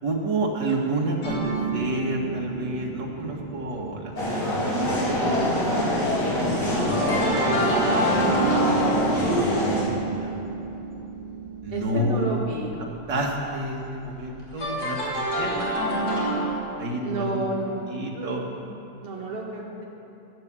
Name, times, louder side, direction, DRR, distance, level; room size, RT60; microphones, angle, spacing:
voice 1, 0.0-5.5 5.9-6.0 6.5-8.3 8.7-10.4 11.6-12.2 13.1-16.3 16.8-17.4 17.8-18.4, right 1 dB, 85° right, -1 dB, 2.4 m, -31 dB
sound 1, 1.2-5.5 5.7-12.1 14.5-16.5, right 2 dB, 65° left, 3.5 m, -28 dB
sound 2, 4.2-9.8, equal, 85° left, 3.9 m, -24 dB
voice 2, 11.7-12.8 17.0-18.5 19.0-19.8, right 2 dB, 35° right, -2 dB, 2.1 m, -31 dB
12.0 x 10.5 x 7.5 m, 3.0 s
omnidirectional pair, 1.8 m